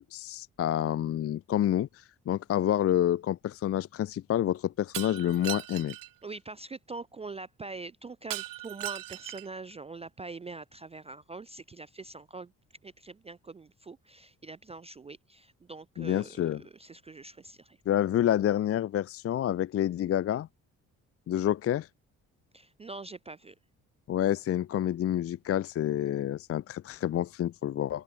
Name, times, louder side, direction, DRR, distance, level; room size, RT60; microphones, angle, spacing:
voice 1, 0.0-5.9 16.0-16.6 17.9-20.5 21.3-21.9 24.1-28.0, left 11 dB, 40° left, 0.5 m, -28 dB
Shatter, 4.9-6.1 8.3-9.6, right 17 dB, 65° right, 0.6 m, -38 dB
voice 2, 6.2-12.5 12.8-17.8 22.5-23.6, right 3 dB, 15° right, 0.4 m, -44 dB
open air
hypercardioid pair, 55°, 36 cm